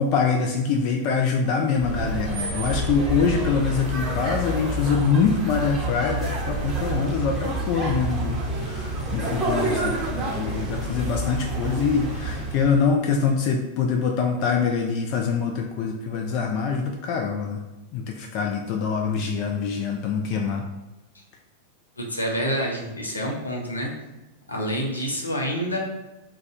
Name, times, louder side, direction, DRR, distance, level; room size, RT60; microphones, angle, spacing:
voice 1, 0.0-10.0 10.4-17.6 17.9-20.6, left 5 dB, 45° left, 2 dB, 0.3 m, -24 dB
sound 1, 1.7-12.8, right 2 dB, ahead, 0.9 m, -28 dB
voice 2, 22.0-23.9 24.5-25.8, equal, 80° left, 0 dB, 0.6 m, -27 dB
2.4 x 2.2 x 4.0 m, 1.0 s
figure-of-eight pair, 90°, 0 cm